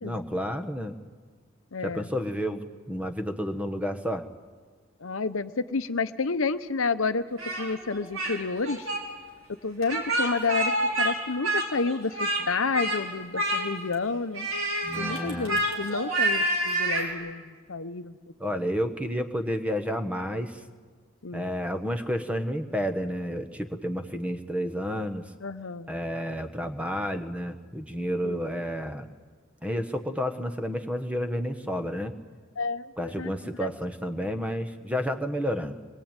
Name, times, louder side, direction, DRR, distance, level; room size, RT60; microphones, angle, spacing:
voice 1, 0.0-1.0 1.8-4.3 14.8-15.6 18.4-20.6 21.3-25.3 25.9-29.1 29.6-32.1 33.0-35.8, equal, 5° right, 7 dB, 1.2 m, -30 dB
voice 2, 1.7-2.1 5.0-8.9 9.6-10.7 11.0-14.5 14.9-18.2 21.2-21.5 25.4-25.9 28.2-28.4 32.6-33.3, left 4 dB, 75° left, 11 dB, 0.9 m, -30 dB
Speech, 7.4-8.4 8.6-9.0 9.8-11.1 11.4-12.4 12.7-13.0 13.3-13.9 14.3-17.1, right 1 dB, 85° right, 4.9 m, -28 dB
24.5 x 21.5 x 9.0 m, 1.5 s
head